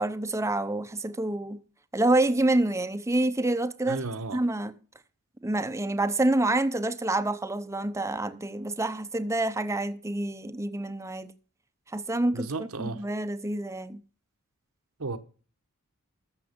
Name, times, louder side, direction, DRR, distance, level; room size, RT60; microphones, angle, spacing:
voice 1, 0.0-1.6 1.9-4.0 4.3-4.7 5.4-11.3 11.9-14.0, right 2 dB, 15° right, 0.7 m, -27 dB
voice 2, 3.9-4.4 12.3-13.0 15.0-15.2, right 3 dB, 75° right, 1.1 m, -33 dB
14.0 x 6.9 x 5.2 m
head